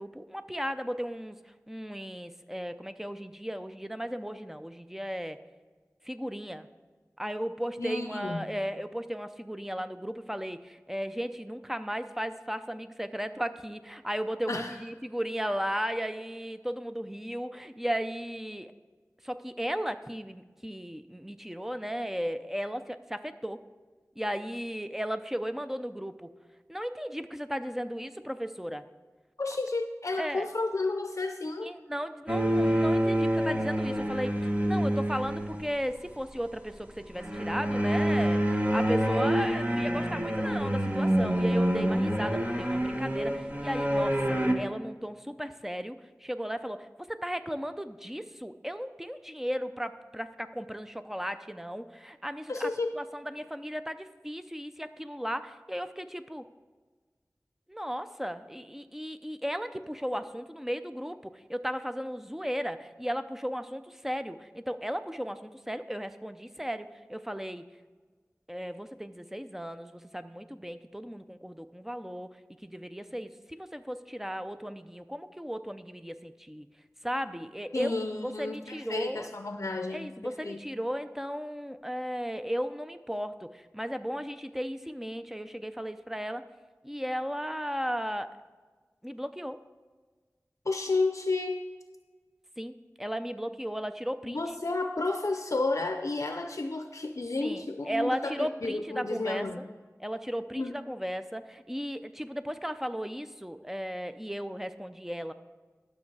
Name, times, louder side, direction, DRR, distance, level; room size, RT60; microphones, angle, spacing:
voice 1, 0.0-1.4 1.7-5.4 6.0-6.7 7.2-18.7 19.2-23.6 24.2-26.3 26.7-28.8 30.2-30.4 31.6-52.7 52.9-56.4 57.7-67.6 68.5-72.4 72.6-76.7 77.0-77.9 78.2-79.3 79.9-86.5 86.8-88.4 89.0-89.6 92.6-94.4 97.4-99.7 100.0-105.3, equal, 5° right, 10 dB, 0.5 m, -35 dB
voice 2, 7.8-8.5 14.5-14.8 29.4-31.7 52.5-52.9 77.7-80.1 80.4-80.6 90.7-91.6 94.2-99.6 100.6-100.7, left 3 dB, 60° left, 6 dB, 0.5 m, -31 dB
sound 1, 32.3-35.8 37.2-44.5, right 1 dB, 25° right, 1.1 m, -27 dB
12.0 x 6.5 x 4.7 m, 1.4 s
wide cardioid pair, 50°, 6 cm